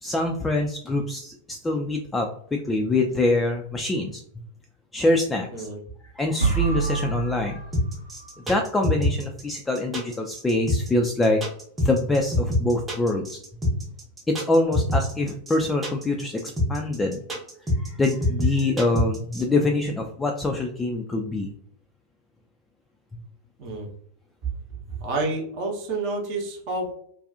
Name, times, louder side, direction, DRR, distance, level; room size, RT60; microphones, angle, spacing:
voice 1, 0.0-4.2 4.9-5.7 6.0-7.6 8.5-11.4 11.8-13.4 14.3-17.2 17.8-21.5, left 2 dB, 10° left, 2 dB, 0.3 m, -25 dB
sound 1, 6.4-8.4, right 5 dB, 90° right, 0.6 m, -27 dB
sound 2, 7.7-19.4, left 1 dB, 15° right, 0.9 m, -25 dB
voice 2, 25.0-26.9, right 2 dB, 45° right, -1 dB, 0.7 m, -29 dB
2.5 x 2.3 x 2.4 m, 0.65 s
figure-of-eight pair, 90°, 0 cm